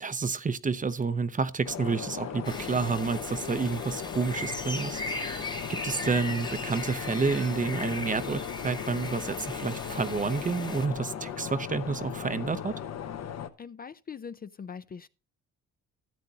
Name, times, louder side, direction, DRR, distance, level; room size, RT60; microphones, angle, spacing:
voice 1, 0.0-12.7, right 4 dB, 25° right, 0.7 m, -30 dB
sound 1, 1.6-13.5, left 8 dB, 60° left, 1.0 m, -37 dB
sound 2, 2.4-10.9, left 2 dB, 15° left, 1.0 m, -38 dB
voice 2, 13.6-15.1, left 6 dB, 30° left, 0.5 m, -42 dB
13.5 x 8.5 x 2.8 m
cardioid pair, 90°, 30 cm